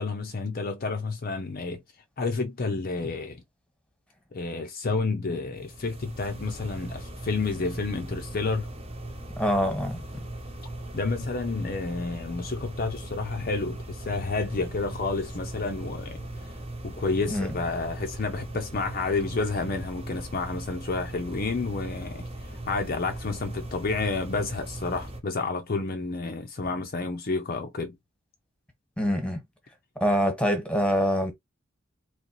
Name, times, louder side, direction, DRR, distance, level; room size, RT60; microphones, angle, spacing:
voice 1, 0.0-1.8 2.2-3.4 4.3-8.7 10.9-16.2 16.8-22.3 22.7-27.9, left 3 dB, 45° left, 0.6 m, -30 dB
sound 1, 5.6-25.2, right 1 dB, 30° right, 1.0 m, -39 dB
voice 2, 9.4-10.0 17.3-17.5 29.0-29.4 30.0-31.3, equal, 5° left, 1.4 m, -25 dB
3.9 x 3.2 x 3.0 m
head